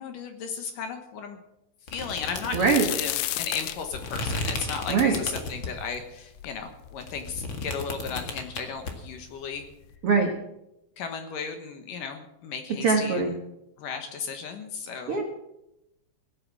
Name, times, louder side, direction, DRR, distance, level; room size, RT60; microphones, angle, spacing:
voice 1, 0.0-1.4 1.9-9.7 11.0-13.3 13.8-15.2, left 6 dB, 65° left, 6 dB, 2.4 m, -35 dB
sound 1, 1.9-5.9 6.4-8.9, left 3 dB, 45° left, 1.7 m, -34 dB
sound 2, 2.1-6.0 6.4-6.5 7.3-7.4 7.7-8.3 9.2-9.3 9.7-9.9, left 15 dB, 90° left, 2.9 m, -33 dB
voice 2, 2.5-2.9 4.9-5.2 10.0-10.3 12.8-13.4 15.1-15.2, right 5 dB, 70° right, 3 dB, 1.3 m, -22 dB
17.0 x 8.8 x 7.4 m, 0.88 s
omnidirectional pair, 4.8 m